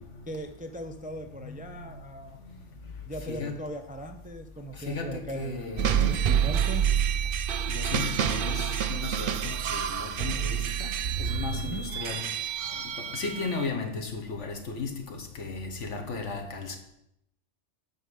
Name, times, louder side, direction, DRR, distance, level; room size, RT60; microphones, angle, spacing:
voice 1, 0.3-2.4 3.0-6.9 7.2-7.4 11.5-11.9, right 1 dB, 10° right, 0.4 m, -39 dB
voice 2, 1.3-2.1 2.4-2.6 3.3-3.6 4.7-6.1 7.7-12.2 12.8-16.8, left 4 dB, 85° left, 1.6 m, -36 dB
sound 1, 5.8-13.7, right 9 dB, 60° right, 0.6 m, -28 dB
10.0 x 4.3 x 7.0 m
omnidirectional pair, 1.2 m